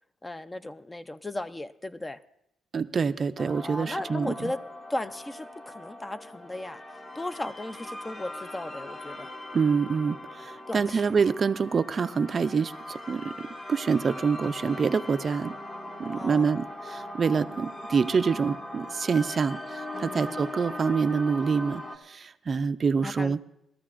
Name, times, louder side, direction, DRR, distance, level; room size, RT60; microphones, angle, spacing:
voice 1, 0.2-2.2 3.6-9.3 10.7-11.0 16.1-16.5 19.9-20.4 23.0-23.4, left 1 dB, 15° left, 12 dB, 0.5 m, -36 dB
voice 2, 2.7-4.5 9.5-13.3 13.7-15.6 16.0-23.4, right 5 dB, 40° right, 12 dB, 0.4 m, -26 dB
sound 1, 3.4-22.0, left 1 dB, 35° left, 1.4 m, -40 dB
20.5 x 13.5 x 2.5 m, 0.81 s
cardioid pair, 90°, 0 cm